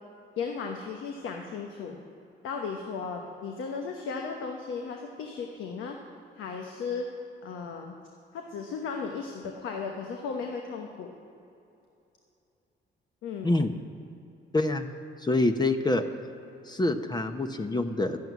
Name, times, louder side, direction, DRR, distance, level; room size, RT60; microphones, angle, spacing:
voice 1, 0.4-2.0 2.4-6.0 6.4-7.1 7.4-7.9 8.3-11.1 13.2-13.6, left 5 dB, 80° left, 2 dB, 1.1 m, -35 dB
voice 2, 13.4-13.7 14.5-14.9 15.2-16.0 16.7-18.2, left 2 dB, 20° left, 6 dB, 0.8 m, -26 dB
12.0 x 7.7 x 9.4 m, 2.8 s
cardioid pair, 90°, 20 cm